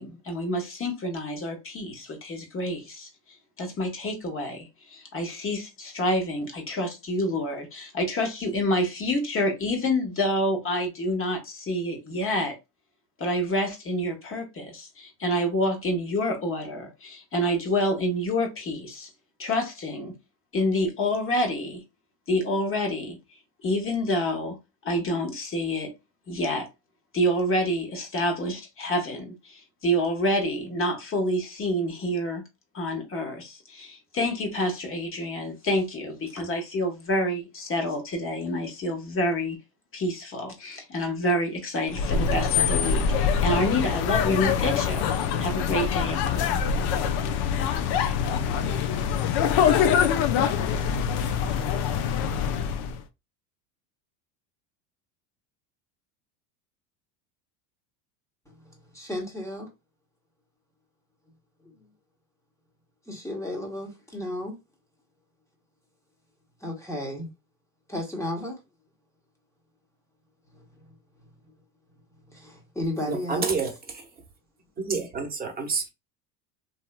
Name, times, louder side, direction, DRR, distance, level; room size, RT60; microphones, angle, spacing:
voice 1, 0.0-3.1 3.6-12.6 13.2-19.1 19.4-20.1 20.5-21.8 22.3-23.2 23.6-24.6 24.8-25.9 26.3-26.7 27.1-32.4 32.7-39.6 39.9-46.6, left 1 dB, 25° left, 1.2 m, -28 dB
sound 1, 41.9-53.0, left 7 dB, 55° left, 0.6 m, -24 dB
voice 2, 58.9-59.7 63.1-64.6 66.6-67.3 67.9-68.6 72.3-73.4, left 1 dB, 5° left, 1.1 m, -33 dB
voice 3, 73.1-74.1 74.8-75.9, right 4 dB, 20° right, 1.0 m, -29 dB
3.0 x 2.8 x 2.2 m
supercardioid pair, 100°, 48 cm